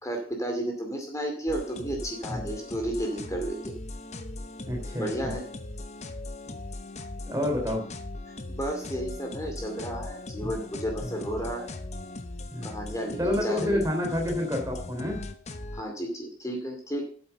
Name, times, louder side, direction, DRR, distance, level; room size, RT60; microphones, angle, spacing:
voice 1, 0.0-3.7 5.0-5.4 8.3-11.8 12.6-13.8 15.7-17.0, right 1 dB, 15° left, 2 dB, 2.4 m, -32 dB
sound 1, 1.5-15.8, left 2 dB, 35° left, 0.8 m, -39 dB
voice 2, 4.6-5.3 6.5-6.6 7.3-7.8 10.4-10.5 11.0-11.1 12.5-12.7 13.2-15.2, left 1 dB, 15° right, 1 dB, 3.2 m, -29 dB
8.9 x 7.6 x 6.8 m, 0.44 s
head